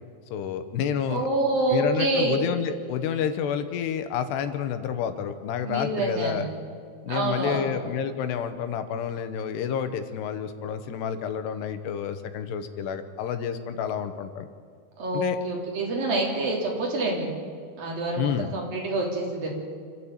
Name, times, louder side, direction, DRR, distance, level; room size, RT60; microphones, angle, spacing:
voice 1, 0.3-1.3 1.7-6.5 7.0-14.5 15.1-15.4 18.2-18.5, left 8 dB, 85° left, 9 dB, 3.2 m, -29 dB
voice 2, 1.1-2.4 5.6-6.4 7.1-7.7 15.0-17.3 17.8-19.5, right 2 dB, 60° right, -1 dB, 5.0 m, -27 dB
26.5 x 13.0 x 8.7 m, 2.1 s
omnidirectional pair, 4.8 m